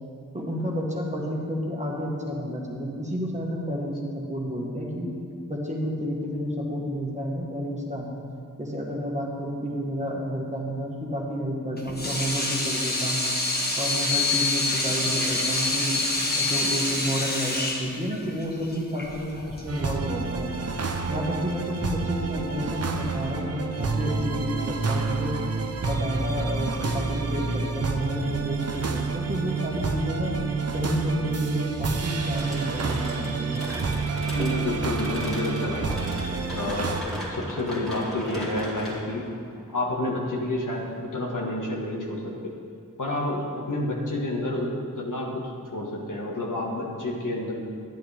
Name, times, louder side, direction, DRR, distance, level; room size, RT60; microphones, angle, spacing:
voice 1, 0.3-5.1 5.5-8.1 8.6-13.3 13.8-16.0 16.3-20.5 21.1-25.4 25.8-30.4 30.7-33.7, equal, 20° right, -2 dB, 1.5 m, -30 dB
Water tap faucet / Sink (filling or washing), 11.8-19.8, left 2 dB, 30° left, 1.4 m, -26 dB
sound 1, 19.7-37.0, right 4 dB, 50° right, 0.7 m, -29 dB
sound 2, 32.3-41.0, equal, ahead, 2.4 m, -38 dB
voice 2, 34.2-35.9 36.5-37.0 37.3-39.2 39.7-42.5 43.0-45.4 45.7-47.5, left 2 dB, 65° left, -3 dB, 1.7 m, -29 dB
11.0 x 10.5 x 3.5 m, 2.3 s
wide cardioid pair, 85°, 33 cm